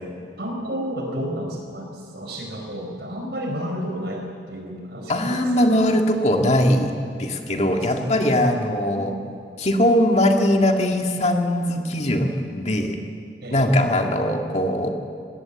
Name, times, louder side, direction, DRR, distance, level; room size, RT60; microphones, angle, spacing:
voice 1, 0.4-5.8 7.5-8.6 8.9-9.3 13.4-13.8, equal, 70° right, 1 dB, 4.7 m, -32 dB
voice 2, 5.1-6.9 7.2-9.1 9.6-13.0 13.5-14.9, left 1 dB, 40° left, 3 dB, 1.9 m, -20 dB
20.0 x 17.5 x 8.3 m, 2.3 s
head